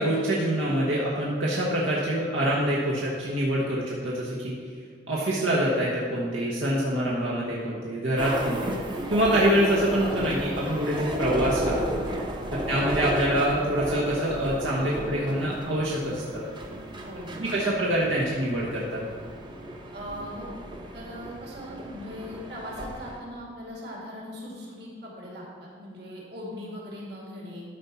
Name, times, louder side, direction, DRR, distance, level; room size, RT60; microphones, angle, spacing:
voice 1, 0.0-4.5 5.1-8.7 9.1-12.0 12.5-16.4 17.4-19.1, right 1 dB, 80° right, -5 dB, 1.3 m, -25 dB
sound 1, 8.2-23.2, equal, 25° right, 0.8 m, -34 dB
voice 2, 17.0-17.6 19.9-20.5 20.9-27.6, equal, 55° right, -3 dB, 2.4 m, -40 dB
12.0 x 4.3 x 5.8 m, 2.1 s
head